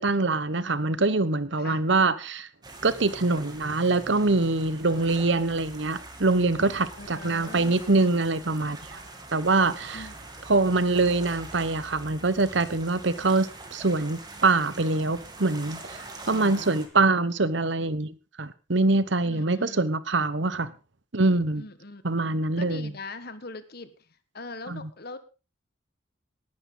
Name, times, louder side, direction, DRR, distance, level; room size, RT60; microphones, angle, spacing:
voice 1, 0.0-2.5 2.8-9.0 9.3-10.0 10.5-16.0 16.3-18.1 18.4-20.7 21.1-21.6 22.0-22.9 24.7-24.8, right 3 dB, 65° right, 1.1 m, -24 dB
sound 1, 2.6-16.9, right 2 dB, 20° right, 2.7 m, -44 dB
voice 2, 5.0-5.9 7.0-7.8 9.9-10.2 16.3-16.8 19.2-19.8 21.5-22.0 22.6-24.1 24.3-25.2, left 3 dB, 50° left, 1.5 m, -42 dB
19.0 x 11.0 x 3.9 m
head